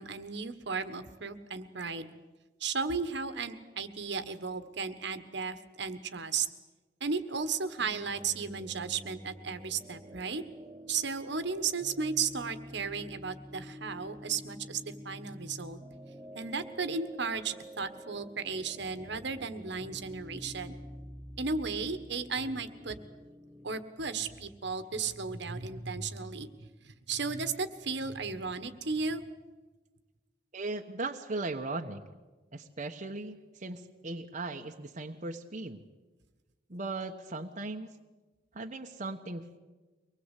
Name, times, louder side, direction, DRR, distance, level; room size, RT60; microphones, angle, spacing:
voice 1, 0.0-2.1 2.6-6.5 7.0-10.4 10.9-15.8 16.3-20.8 21.4-23.0 23.6-29.2, right 5 dB, 65° right, 10 dB, 1.5 m, -35 dB
sound 1, 7.8-23.8, equal, 15° right, 1.0 m, -48 dB
voice 2, 30.5-32.0 32.5-35.8 36.7-37.9 38.5-39.6, right 2 dB, 40° right, 3 dB, 1.1 m, -38 dB
24.0 x 20.0 x 8.3 m, 1.2 s
head